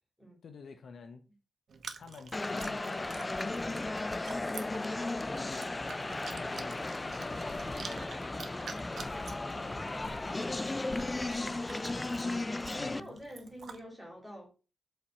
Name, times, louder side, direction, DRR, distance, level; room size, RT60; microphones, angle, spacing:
voice 1, 0.4-1.2 2.0-3.1 4.4-5.7 6.4-10.9 12.8-13.2, left 5 dB, 75° left, 0.8 m, -51 dB
Chewing mastication, 1.7-13.8, right 5 dB, 75° right, 0.8 m, -49 dB
sound 1, 2.3-13.0, left 2 dB, 20° left, 0.3 m, -35 dB
sound 2, 5.5-5.7 6.0-6.1 6.4-6.8 7.1-8.5 9.0-12.3, left 3 dB, 45° left, 1.0 m, -54 dB
voice 2, 6.0-6.4 11.3-14.5, equal, 5° left, 2.9 m, -48 dB
5.1 x 4.2 x 5.8 m
wide cardioid pair, 135°, 0 cm